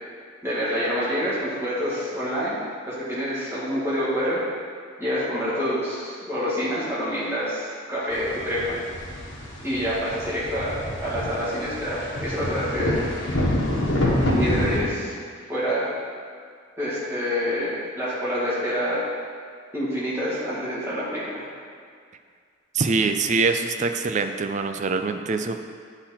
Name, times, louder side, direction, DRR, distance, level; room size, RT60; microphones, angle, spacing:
voice 1, 0.4-2.6 2.9-4.4 5.0-8.8 9.6-13.0 14.2-15.1 15.5-15.9 16.8-19.1 19.7-21.4, equal, 10° right, -10 dB, 2.0 m, -27 dB
sound 1, 8.1-14.8, left 1 dB, 60° left, 1.3 m, -27 dB
voice 2, 22.7-25.7, right 4 dB, 35° right, 7 dB, 0.4 m, -24 dB
9.9 x 3.9 x 4.3 m, 2.1 s
head